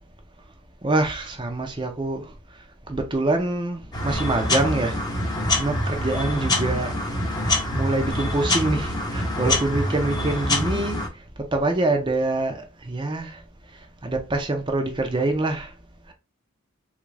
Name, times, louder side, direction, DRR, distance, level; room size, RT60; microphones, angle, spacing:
voice 1, 0.8-2.3 2.9-5.0 5.5-6.9 7.5-11.0 11.5-13.4 14.0-15.7, right 2 dB, 20° right, 0.6 m, -25 dB
sound 1, 3.9-11.1, left 1 dB, 20° left, 0.8 m, -25 dB
3.5 x 2.4 x 3.2 m
head